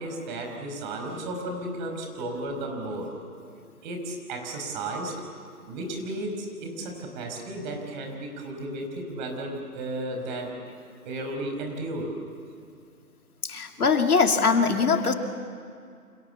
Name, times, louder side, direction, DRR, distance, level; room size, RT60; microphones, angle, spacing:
voice 1, 0.0-3.1 3.8-5.2 5.7-10.6 11.1-12.1, right 1 dB, 30° right, 3 dB, 5.3 m, -34 dB
voice 2, 13.4-15.1, left 5 dB, 75° left, 5 dB, 2.7 m, -22 dB
29.5 x 27.0 x 7.1 m, 2.3 s
figure-of-eight pair, 140°, 45 cm